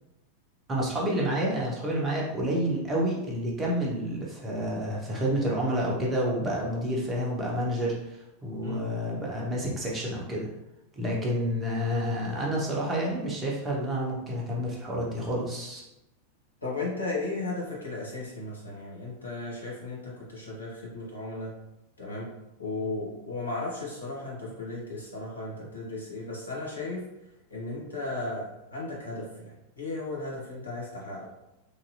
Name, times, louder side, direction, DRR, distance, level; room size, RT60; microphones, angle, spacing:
voice 1, 0.7-10.5 11.0-15.8, equal, 20° right, -3 dB, 0.9 m, -29 dB
voice 2, 16.6-21.5 22.0-22.3 22.6-27.0 27.5-31.3, left 2 dB, 80° left, -5 dB, 1.0 m, -35 dB
3.0 x 2.7 x 2.7 m, 0.92 s
figure-of-eight pair, 90°, 0 cm